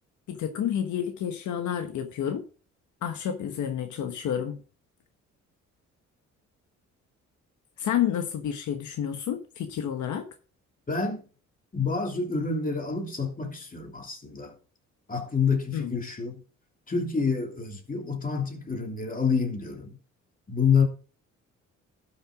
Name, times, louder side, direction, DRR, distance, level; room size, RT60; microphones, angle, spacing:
voice 1, 0.3-2.4 3.0-4.6 7.8-10.2 15.7-15.9, left 9 dB, 75° left, 1.2 m, -30 dB
voice 2, 10.9-11.2 11.7-14.5 15.1-16.4 16.9-20.0 20.5-20.8, left 5 dB, 30° left, 2.8 m, -28 dB
12.5 x 6.5 x 3.7 m
cardioid pair, 90°, 30 cm